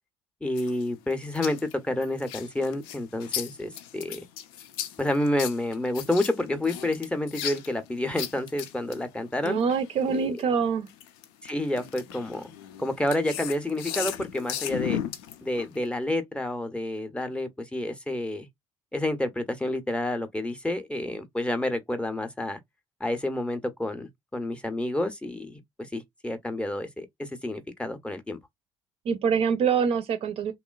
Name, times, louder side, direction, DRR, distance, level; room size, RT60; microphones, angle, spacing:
voice 1, 0.4-4.2 5.0-9.6 10.1-10.3 11.4-12.5 12.8-15.0 15.4-18.5 18.9-22.6 23.0-28.4, left 1 dB, 10° left, 0.6 m, -29 dB
sound 1, 0.6-10.4 10.9-15.9, left 10 dB, 65° left, 0.4 m, -36 dB
voice 2, 9.4-10.9 29.1-30.5, right 6 dB, 45° right, 0.5 m, -25 dB
2.9 x 2.1 x 2.2 m
figure-of-eight pair, 50°, 13 cm